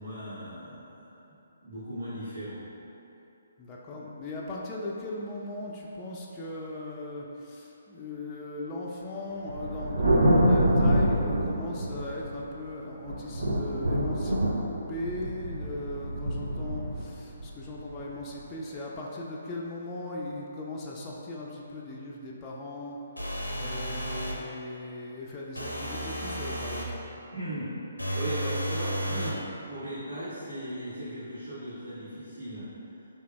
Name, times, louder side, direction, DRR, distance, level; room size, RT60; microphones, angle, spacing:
voice 1, 0.0-1.4 1.6-2.6 27.3-27.7 28.1-29.4 29.7-32.7, right 1 dB, 85° right, -17 dB, 1.4 m, -37 dB
voice 2, 3.6-14.4 14.9-23.0 23.5-27.0, left 2 dB, 20° left, -4 dB, 0.4 m, -38 dB
Thunder, 9.5-12.6 13.0-18.4, right 1 dB, 65° right, 0.6 m, -26 dB
sound 1, 23.2-24.4 25.5-26.9 28.0-29.4, equal, 90° left, 0.5 m, -33 dB
4.8 x 2.8 x 2.2 m, 2.9 s
figure-of-eight pair, 135°, 0 cm